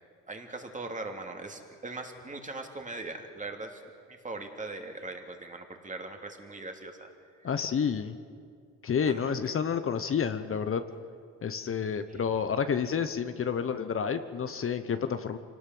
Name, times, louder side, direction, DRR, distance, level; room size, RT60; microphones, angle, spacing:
voice 1, 0.3-3.8 4.1-7.1 7.4-7.5 9.0-9.4 12.1-12.3, right 2 dB, 25° right, 4 dB, 2.9 m, -40 dB
voice 2, 7.4-8.2 8.8-10.8 11.4-15.4, left 7 dB, 45° left, 10 dB, 1.0 m, -29 dB
25.0 x 18.5 x 7.8 m, 2.2 s
cardioid pair, 90°, 30 cm